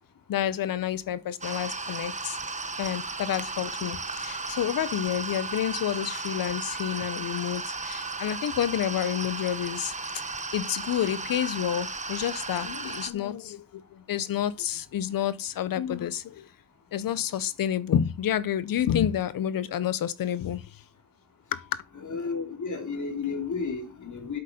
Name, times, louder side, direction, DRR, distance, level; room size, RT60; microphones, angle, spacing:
voice 1, 0.3-2.4 2.8-9.9 10.5-16.5 16.9-20.8 21.5-21.7, left 10 dB, 85° left, 0.8 m, -29 dB
sound 1, 1.4-13.1, right 3 dB, 20° right, 1.0 m, -35 dB
voice 2, 21.9-24.4, left 5 dB, 60° left, 3.1 m, -32 dB
8.2 x 6.8 x 5.0 m
cardioid pair, 75°, 33 cm